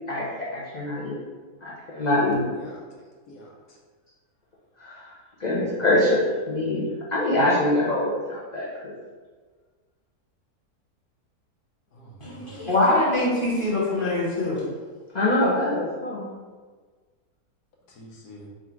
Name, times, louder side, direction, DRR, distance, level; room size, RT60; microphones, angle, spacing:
voice 1, 0.1-1.2 1.6-2.5 4.8-5.1 5.4-6.2 6.5-8.9 15.1-16.3, left 1 dB, 60° left, -6 dB, 0.4 m, -24 dB
voice 2, 3.3-3.8 11.9-12.7 17.9-18.5, left 1 dB, 90° left, -2 dB, 1.4 m, -46 dB
voice 3, 12.2-14.6, left 2 dB, 25° left, -7 dB, 1.0 m, -23 dB
3.6 x 2.5 x 4.4 m, 1.5 s
omnidirectional pair, 1.6 m